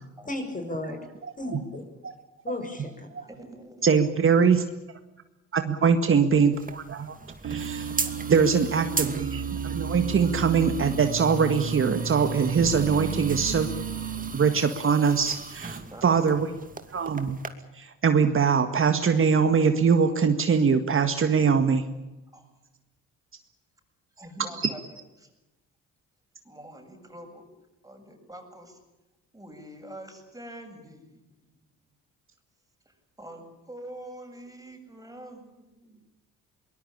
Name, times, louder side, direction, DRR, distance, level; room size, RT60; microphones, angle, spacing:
voice 1, 0.3-1.0 1.4-1.8 2.4-3.3, left 2 dB, 25° left, 6 dB, 6.3 m, -34 dB
voice 2, 3.3-3.9 8.0-8.3 15.6-16.1 22.3-22.5 24.2-24.9 25.2-25.3 26.4-27.5 27.8-28.8 29.3-31.5 32.9-36.0, right 1 dB, 10° right, 4 dB, 7.7 m, -45 dB
voice 3, 3.8-4.6 5.5-7.2 7.4-7.9 8.3-13.7 14.3-16.5 16.9-17.4 17.7-21.9, right 6 dB, 45° right, 8 dB, 1.9 m, -22 dB
sound 1, 6.5-17.5, right 4 dB, 25° right, 2.5 m, -38 dB
sound 2, 7.4-14.3, right 6 dB, 75° right, 4.3 m, -33 dB
23.0 x 20.5 x 8.7 m, 1.0 s
cardioid pair, 90°, 30 cm